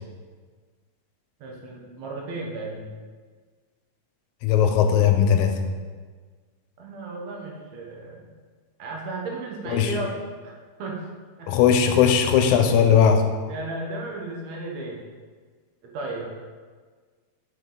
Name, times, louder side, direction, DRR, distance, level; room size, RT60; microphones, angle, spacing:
voice 1, 1.4-2.9 6.8-8.3 8.8-10.2 10.4-11.0 11.4-11.5 13.5-15.0 15.8-16.3, right 2 dB, 70° right, -1 dB, 2.0 m, -34 dB
voice 2, 4.4-5.6 9.7-9.9 11.5-13.3, left 8 dB, 85° left, 6 dB, 2.0 m, -18 dB
6.1 x 5.6 x 3.7 m, 1.5 s
omnidirectional pair, 3.3 m